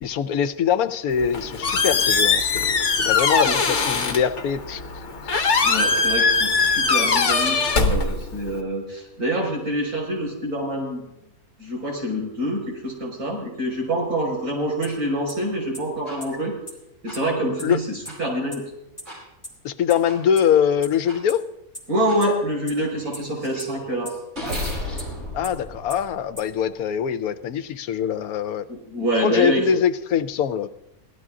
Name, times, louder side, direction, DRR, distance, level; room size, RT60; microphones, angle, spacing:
voice 1, 0.0-4.8 17.6-17.8 19.6-21.4 25.3-28.7 29.2-30.7, left 8 dB, 80° left, 11 dB, 1.1 m, -23 dB
Squeak, 1.1-8.6, left 4 dB, 55° left, 1.2 m, -21 dB
voice 2, 5.6-11.1 11.6-16.5 17.0-18.6 21.9-24.1 28.7-29.7, right 1 dB, 85° right, -1 dB, 5.8 m, -26 dB
sound 1, 14.8-14.9 15.3-15.4 15.7-15.8 16.2-16.3 16.7-16.8 17.1-17.2 17.6-17.7 18.1-18.2 18.5-18.6 19.0-19.1 19.4-19.5 19.9-20.0 20.4-20.5 20.8-20.9 21.3-21.4 21.7-21.8 22.2-22.3 22.7-22.8 23.1-23.2 23.6-23.7 24.1-24.2 24.5-24.6 25.0-25.1 25.4-25.5 25.9-26.0 26.4-26.5, equal, 10° left, 2.6 m, -34 dB
sound 2, 16.1-16.2 17.1-17.2 18.1-18.2 19.1-19.2 20.1-20.2 21.1-21.2 22.1-22.2 22.7-26.6, left 1 dB, 50° right, 6.6 m, -34 dB
17.5 x 12.0 x 3.7 m, 0.85 s
omnidirectional pair, 1.5 m